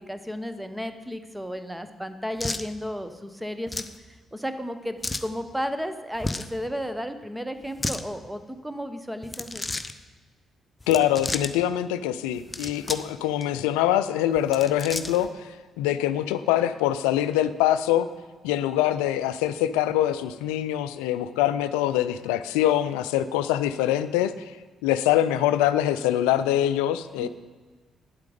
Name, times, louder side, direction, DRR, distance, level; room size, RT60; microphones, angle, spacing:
voice 1, 0.0-9.6 27.2-27.3, equal, 5° right, 9 dB, 0.9 m, -33 dB
sound 1, 2.4-2.7 3.7-4.0 5.0-5.3 6.2-6.5 7.6-8.0 9.2-9.9 10.8-11.5 12.3-13.1 13.4-13.5 14.4-15.3, left 2 dB, 25° left, 0.6 m, -32 dB
voice 2, 10.9-18.1 18.4-24.5 24.8-27.3, left 12 dB, 75° left, 13 dB, 0.4 m, -24 dB
9.2 x 8.1 x 5.1 m, 1.4 s
hypercardioid pair, 40°, 0 cm